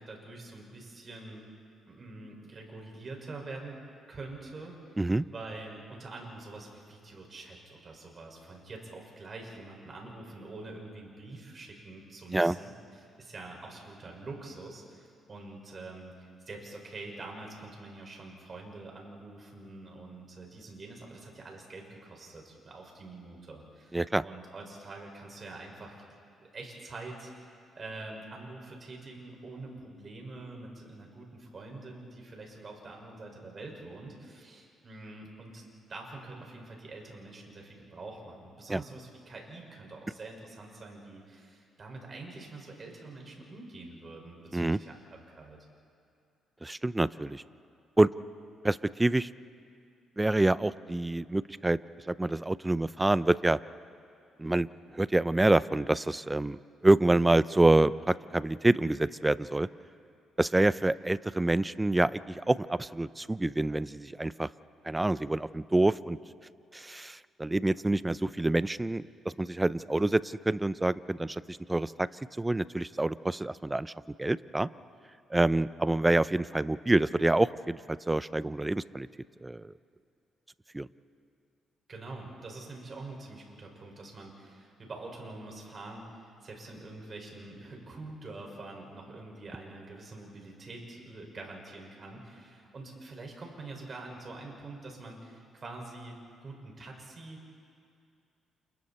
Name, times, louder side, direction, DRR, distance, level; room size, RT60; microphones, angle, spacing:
voice 1, 0.0-1.5 1.9-3.8 4.1-5.0 5.3-25.9 26.4-27.3 27.7-35.6 35.9-45.6 81.9-97.6, right 2 dB, 40° right, 1 dB, 5.5 m, -45 dB
voice 2, 46.6-47.4 48.0-48.1 48.6-49.3 50.2-51.8 52.1-53.6 54.4-54.7 54.9-59.7 60.4-64.5 64.8-66.2 66.7-72.1 72.4-73.9 74.2-74.7 75.3-79.1 79.4-79.7 80.7-80.9, right 2 dB, 15° right, 16 dB, 0.5 m, -27 dB
30.0 x 28.0 x 4.3 m, 2.4 s
cardioid pair, 90°, 0 cm